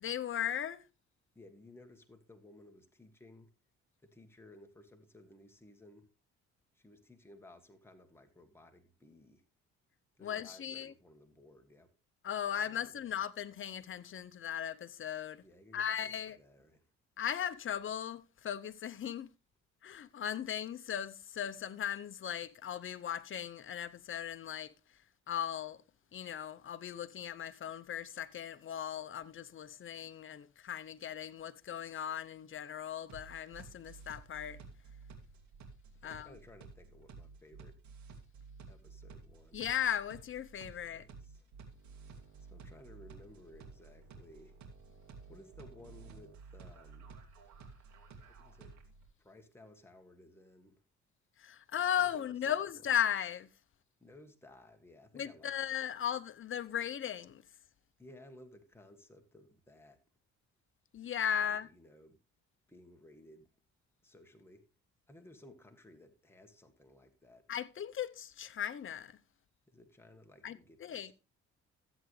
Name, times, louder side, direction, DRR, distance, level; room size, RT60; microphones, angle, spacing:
voice 1, 0.0-0.8 10.2-10.9 12.2-15.4 15.7-16.4 17.2-19.3 19.8-24.7 25.3-25.8 26.1-34.6 36.0-36.3 39.5-41.0 51.4-53.5 55.1-57.4 60.9-61.7 67.5-69.2 70.4-71.1, left 9 dB, 40° left, 0.8 m, -37 dB
voice 2, 1.3-3.5 4.0-6.1 6.7-9.4 10.1-11.9 12.5-13.2 15.4-16.9 35.9-37.8 38.7-39.7 40.7-41.4 42.5-44.6 45.3-47.1 48.4-48.8 49.2-50.8 52.0-52.7 54.0-55.7 58.0-60.0 61.4-62.2 62.7-63.5 64.0-64.6 65.1-67.5 69.7-71.1, left 1 dB, 10° left, 1.6 m, -58 dB
sound 1, 33.1-49.1, right 4 dB, 65° right, 2.6 m, -53 dB
13.5 x 7.9 x 3.2 m
cardioid pair, 90°, 30 cm